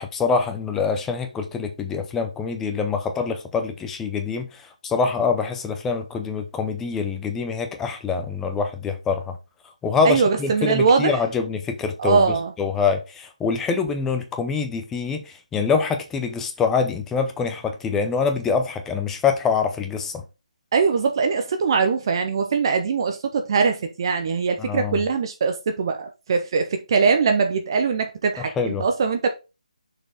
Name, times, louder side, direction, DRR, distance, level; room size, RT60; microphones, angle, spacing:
voice 1, 0.0-9.4 9.8-20.2 24.6-25.0 28.4-28.9, left 5 dB, 10° left, 0.7 m, -25 dB
voice 2, 10.0-11.2 12.0-12.5 20.7-29.3, right 5 dB, 35° right, 0.8 m, -21 dB
6.4 x 4.5 x 4.1 m
figure-of-eight pair, 150°, 4 cm